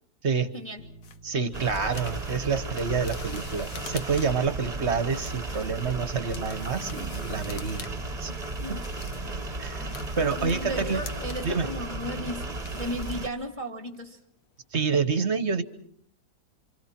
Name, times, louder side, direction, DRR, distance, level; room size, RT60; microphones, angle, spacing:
voice 1, 0.5-0.8 8.6-8.9 10.4-14.2, equal, 10° left, 4 dB, 1.9 m, -35 dB
sound 1, 0.8-3.5 3.8-5.8 6.1-9.5 9.8-12.4 12.7-12.8, left 4 dB, 80° left, 2.2 m, -48 dB
sound 2, 1.0-4.5 5.0-7.9 8.2-9.4 9.7-13.7 13.9-14.2 14.5-14.6, left 6 dB, 55° left, 1.5 m, -46 dB
voice 2, 1.2-7.9 8.2-8.3 8.7-8.8 9.6-9.8 10.1-11.0 11.4-11.7 14.7-15.6, right 5 dB, 45° right, 10 dB, 1.3 m, -28 dB
sound 3, 1.5-13.3, right 2 dB, 25° right, 1.3 m, -35 dB
28.5 x 26.5 x 4.4 m, 0.66 s
omnidirectional pair, 1.8 m